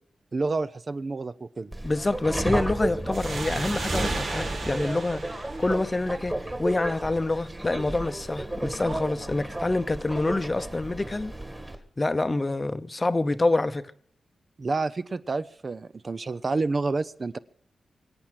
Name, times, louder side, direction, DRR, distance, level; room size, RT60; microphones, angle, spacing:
voice 1, 0.3-1.7 14.6-17.4, right 3 dB, 40° right, 0.6 m, -29 dB
Subway metro underground, 1.7-11.7, right 1 dB, 15° right, 1.9 m, -33 dB
voice 2, 1.8-11.3 12.0-13.9, left 2 dB, 25° left, 0.8 m, -27 dB
sound 1, 3.1-6.5, right 3 dB, 75° right, 2.9 m, -35 dB
24.0 x 8.7 x 6.3 m
wide cardioid pair, 105°, 0 cm